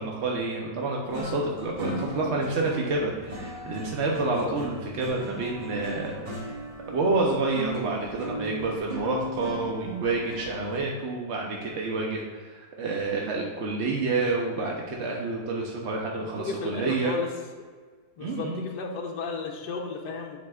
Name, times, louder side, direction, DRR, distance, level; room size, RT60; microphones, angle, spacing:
voice 1, 0.0-6.5 6.9-17.2 18.2-18.6, right 3 dB, 60° right, -1 dB, 0.7 m, -29 dB
sound 1, 1.0-10.8, equal, 30° right, 1.6 m, -37 dB
voice 2, 16.2-17.3 18.2-20.4, left 4 dB, 70° left, 0 dB, 1.3 m, -34 dB
9.4 x 4.9 x 2.4 m, 1.5 s
omnidirectional pair, 2.0 m